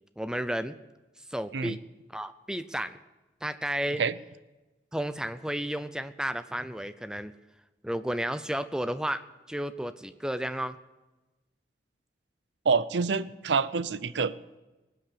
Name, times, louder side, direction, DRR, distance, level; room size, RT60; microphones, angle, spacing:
voice 1, 0.2-0.7 1.3-1.8 2.1-3.0 3.4-4.0 4.9-7.3 7.8-10.8, equal, 5° right, 12 dB, 0.5 m, -32 dB
voice 2, 12.7-14.3, right 5 dB, 85° right, 16 dB, 0.6 m, -26 dB
20.5 x 8.4 x 6.9 m, 1.1 s
head